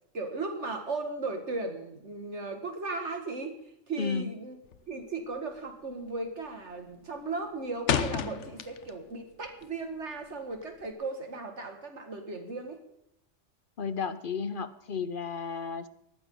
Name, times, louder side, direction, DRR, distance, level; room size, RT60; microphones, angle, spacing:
voice 1, 0.1-3.6 3.9-4.6 4.9-12.8, right 3 dB, 65° right, 5 dB, 2.4 m, -36 dB
voice 2, 4.0-4.3 13.8-15.9, left 5 dB, 50° left, 13 dB, 0.9 m, -33 dB
sound 1, 4.6-5.0 5.3-5.7 6.0-6.5 6.8-9.1 9.4-10.9, left 8 dB, 70° left, 1.1 m, -32 dB
19.5 x 14.5 x 3.9 m, 0.78 s
omnidirectional pair, 1.3 m